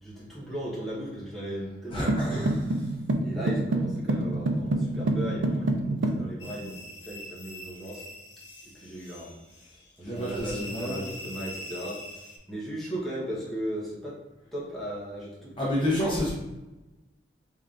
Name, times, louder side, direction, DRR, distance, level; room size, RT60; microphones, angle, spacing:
voice 1, 0.0-2.4 3.2-8.1 8.7-9.4 9.7-12.0 12.5-14.2 14.5-16.0, right 1 dB, ahead, -8 dB, 1.1 m, -37 dB
voice 2, 1.9-2.5 10.0-11.0 15.6-16.3, left 1 dB, 30° left, -6 dB, 0.9 m, -29 dB
sound 1, 2.1-6.3, right 2 dB, 80° right, 0.4 m, -27 dB
sound 2, 6.4-12.4, left 1 dB, 65° left, 0.9 m, -43 dB
4.3 x 3.5 x 2.5 m, 1.0 s
head